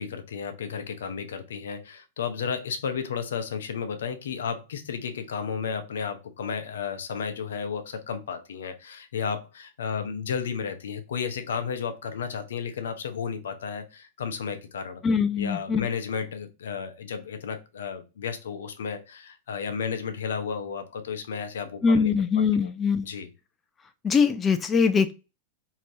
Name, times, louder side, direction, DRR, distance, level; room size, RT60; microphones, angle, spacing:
voice 1, 0.0-15.0 15.4-22.1 22.5-22.7 23.0-23.3, left 6 dB, 75° left, 9 dB, 0.6 m, -33 dB
voice 2, 15.0-15.8 21.8-23.1 24.0-25.1, left 5 dB, 20° left, 9 dB, 0.3 m, -22 dB
3.2 x 2.8 x 2.6 m, 0.29 s
hypercardioid pair, 105°, 0 cm